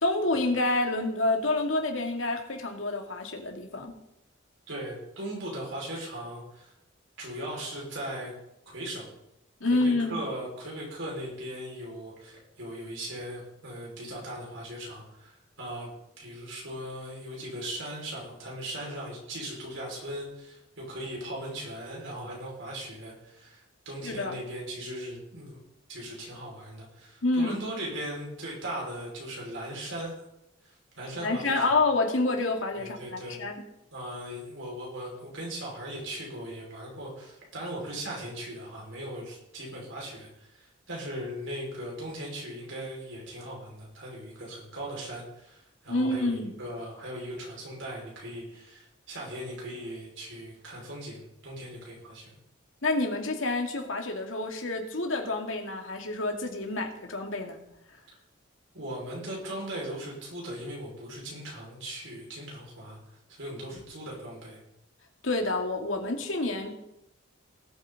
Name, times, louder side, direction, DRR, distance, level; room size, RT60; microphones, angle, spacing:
voice 1, 0.0-4.0 9.6-10.2 24.0-24.4 27.2-27.6 31.2-33.6 45.9-46.6 52.8-57.6 65.2-66.7, left 2 dB, 85° left, 3 dB, 2.3 m, -28 dB
voice 2, 4.7-6.7 7.2-8.3 8.7-9.1 9.7-15.9 16.2-25.6 25.9-30.1 30.6-31.7 32.8-33.4 33.9-52.4 58.7-63.0 63.3-64.6, right 1 dB, 75° right, -3 dB, 5.7 m, -38 dB
18.5 x 8.6 x 4.2 m, 0.83 s
head